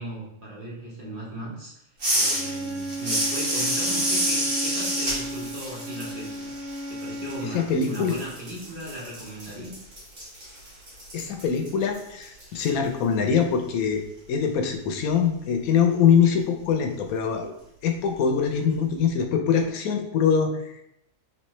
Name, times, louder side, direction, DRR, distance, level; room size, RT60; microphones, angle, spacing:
voice 1, 0.0-1.7 2.1-6.5 6.9-9.8, right 1 dB, 40° right, -5 dB, 1.0 m, -37 dB
sound 1, 2.0-7.5 7.8-12.7, right 1 dB, 90° right, 2.0 m, -29 dB
Bowed string instrument, 2.2-7.7, right 1 dB, 75° right, 1.1 m, -34 dB
voice 2, 7.4-8.1 11.1-14.0 14.3-17.5 17.8-20.8, left 7 dB, 80° left, 4 dB, 1.0 m, -23 dB
3.5 x 3.2 x 3.0 m, 0.79 s
omnidirectional pair, 1.5 m